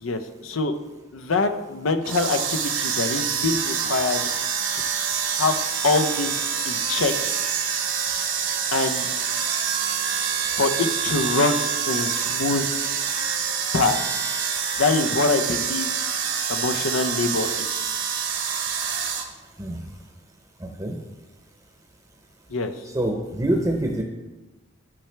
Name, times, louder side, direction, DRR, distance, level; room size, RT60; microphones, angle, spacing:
voice 1, 0.0-0.7 1.1-4.3 5.3-5.5 5.8-6.4 6.7-7.3 8.7-9.1 10.6-11.6 11.9-12.7 13.7-14.0 14.8-15.9 16.5-17.8 22.5-22.7, left 3 dB, 90° left, 7 dB, 0.7 m, -24 dB
sound 1, 2.0-19.3, right 7 dB, 65° right, 1.1 m, -26 dB
voice 2, 20.6-21.0 22.9-24.0, right 1 dB, 20° right, 1 dB, 0.8 m, -25 dB
12.0 x 5.8 x 3.3 m, 1.1 s
head